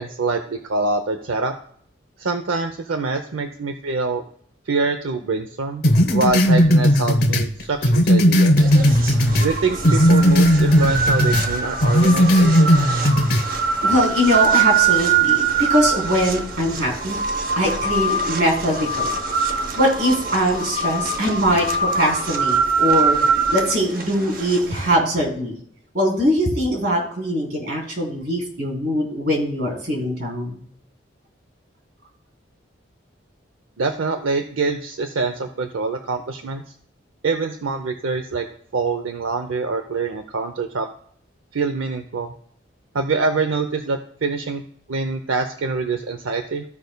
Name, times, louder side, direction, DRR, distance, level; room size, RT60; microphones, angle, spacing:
voice 1, 0.0-1.5 2.2-4.2 4.7-5.8 6.1-8.5 9.4-12.8 33.8-36.6 37.2-38.5 38.7-40.9 41.5-42.3 42.9-44.6 44.9-46.6, right 4 dB, 90° right, 6 dB, 0.7 m, -25 dB
sound 1, 5.8-9.5 9.8-11.5 11.8-13.5, equal, 50° left, 0.9 m, -16 dB
sound 2, 8.6-24.9, right 5 dB, 45° right, 0.8 m, -23 dB
voice 2, 13.8-17.2 17.6-19.1 19.8-23.2 23.5-25.6 25.9-30.6, equal, 60° right, 0 dB, 3.6 m, -21 dB
15.0 x 5.2 x 2.2 m, 0.63 s
head